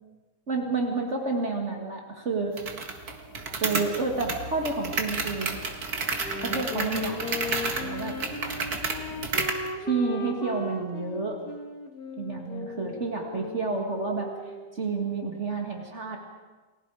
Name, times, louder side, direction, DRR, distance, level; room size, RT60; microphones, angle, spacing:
voice 1, 0.5-2.6 3.5-5.6 6.4-7.3 7.8-8.2 9.9-11.4 12.2-14.3 14.7-16.2, right 3 dB, 50° right, 1 dB, 2.4 m, -30 dB
sound 1, 2.6-9.7, right 4 dB, 80° right, 2.4 m, -31 dB
Wind instrument woodwind instrument, 6.1-14.8, left 2 dB, 80° left, 2.4 m, -37 dB
30.0 x 21.0 x 4.9 m, 1.3 s
omnidirectional pair, 1.6 m